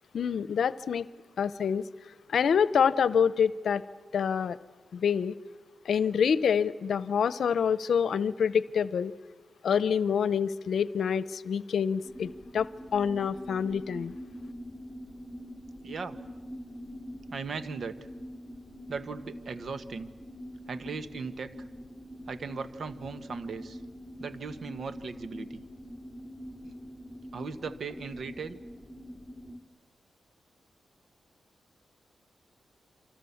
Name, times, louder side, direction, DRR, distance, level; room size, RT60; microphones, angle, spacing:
voice 1, 0.1-1.1 1.4-1.8 2.3-3.8 4.1-4.6 4.9-5.4 5.9-9.1 9.6-12.7 12.9-14.2, left 7 dB, 75° left, 17 dB, 0.8 m, -26 dB
sound 1, 12.0-29.6, equal, ahead, 3.5 m, -44 dB
voice 2, 15.6-16.2 17.3-18.0 18.9-20.1 20.7-21.7 22.3-23.8 24.2-25.6 26.6-26.7 27.3-28.6, right 5 dB, 65° right, 12 dB, 1.5 m, -38 dB
28.5 x 25.0 x 7.2 m, 1.4 s
cardioid pair, 70°, 0 cm